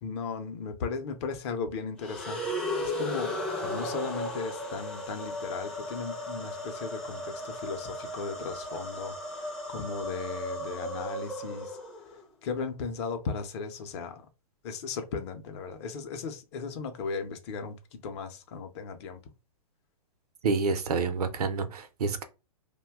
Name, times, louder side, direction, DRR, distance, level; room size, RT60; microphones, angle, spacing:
voice 1, 0.0-11.8 12.4-14.3 14.6-19.2, left 5 dB, 45° left, 0.6 m, -36 dB
sound 1, 2.0-12.2, left 1 dB, 5° left, 0.5 m, -35 dB
voice 2, 20.4-22.2, right 4 dB, 80° right, 0.7 m, -28 dB
2.6 x 2.2 x 3.4 m
hypercardioid pair, 140°, 19 cm